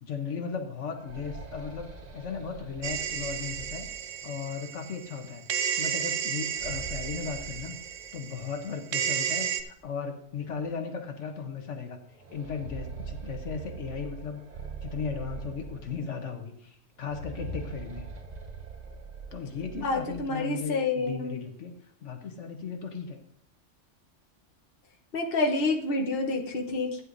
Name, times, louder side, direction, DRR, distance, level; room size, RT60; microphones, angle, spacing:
voice 1, 0.0-3.9 4.2-5.4 5.8-7.8 8.1-14.4 14.8-18.1 19.3-23.2, left 6 dB, 75° left, 5 dB, 1.3 m, -36 dB
sound 1, 0.7-4.5 6.3-8.5 8.8-8.9 9.8-9.9 10.4-10.5 12.1-16.3 17.0-20.4, right 4 dB, 40° right, 0.9 m, -42 dB
sound 2, 2.8-5.2 5.5-9.6, right 8 dB, 85° right, 1.1 m, -32 dB
voice 2, 19.8-21.4 25.1-27.0, left 3 dB, 50° left, 1 dB, 1.2 m, -28 dB
15.0 x 9.4 x 2.6 m, 0.70 s
omnidirectional pair, 1.3 m